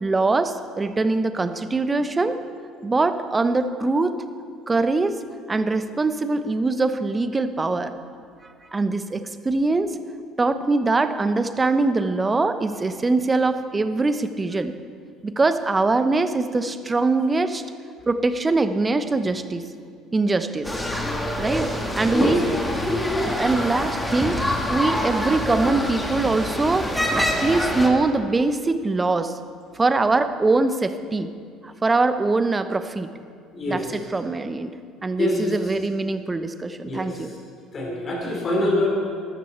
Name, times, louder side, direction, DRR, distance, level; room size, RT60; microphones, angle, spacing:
voice 1, 0.0-2.4 2.8-4.2 4.7-5.2 5.5-7.9 8.7-9.9 10.4-14.7 15.2-17.6 18.1-19.6 20.1-20.7 21.4-22.5 23.2-24.4 24.7-26.9 27.2-29.4 29.7-31.3 31.6-33.1 33.6-34.7 35.0-37.3, right 3 dB, 20° right, 11 dB, 0.8 m, -22 dB
sound 1, 20.6-27.9, left 1 dB, 10° left, 2.0 m, -25 dB
voice 2, 33.5-33.8 35.2-35.5 36.8-37.1 37.7-38.9, left 1 dB, 40° left, -1 dB, 4.1 m, -24 dB
14.0 x 12.5 x 4.4 m, 2.2 s
figure-of-eight pair, 55°, 0 cm